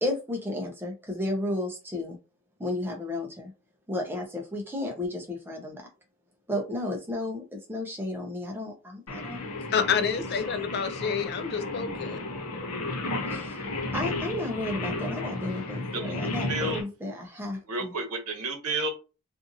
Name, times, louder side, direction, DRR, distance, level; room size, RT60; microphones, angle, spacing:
voice 1, 0.0-2.2 2.6-3.5 3.9-5.8 6.5-9.4 13.3-17.9, left 1 dB, 10° right, 0.6 m, -33 dB
Singing, 9.1-16.8, left 2 dB, 75° left, 0.7 m, -33 dB
voice 2, 9.7-12.2, left 7 dB, 45° left, 0.4 m, -28 dB
voice 3, 15.9-16.8 17.7-18.9, right 2 dB, 85° right, 0.9 m, -31 dB
2.6 x 2.5 x 2.6 m
head